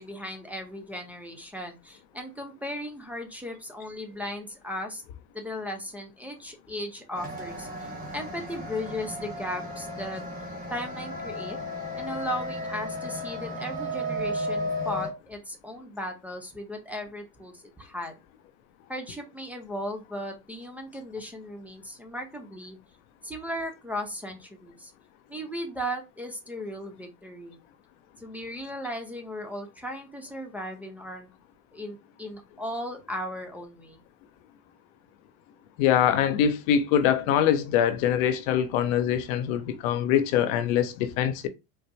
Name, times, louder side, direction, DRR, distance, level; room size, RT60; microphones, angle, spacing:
voice 1, 0.0-5.0 5.3-10.2 10.7-11.6 11.9-18.1 18.9-22.8 23.2-24.9 25.3-27.6 28.2-31.3 31.7-34.0, equal, 5° right, 0.7 m, -36 dB
sound 1, 7.1-15.1, left 1 dB, 20° right, 1.4 m, -34 dB
voice 2, 35.8-41.5, left 9 dB, 65° left, 0.7 m, -23 dB
4.4 x 2.2 x 2.6 m
hypercardioid pair, 90°, 45 cm